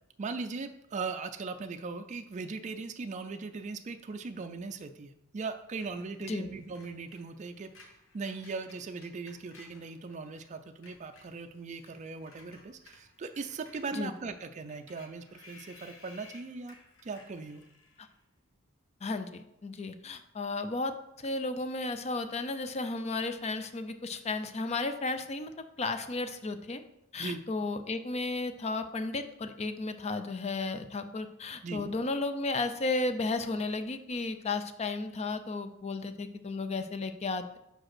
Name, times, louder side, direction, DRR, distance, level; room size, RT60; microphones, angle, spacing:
voice 1, 0.2-7.7 8.1-16.8 17.0-17.7 27.2-27.4 31.6-31.9, right 4 dB, 35° right, 7 dB, 0.4 m, -39 dB
Screech, 5.8-10.5 10.7-18.2, left 3 dB, 70° left, 1.3 m, -58 dB
voice 2, 19.0-25.5 25.8-26.8 27.1-37.6, left 3 dB, 30° left, 9 dB, 0.5 m, -34 dB
5.2 x 4.9 x 6.0 m, 0.83 s
head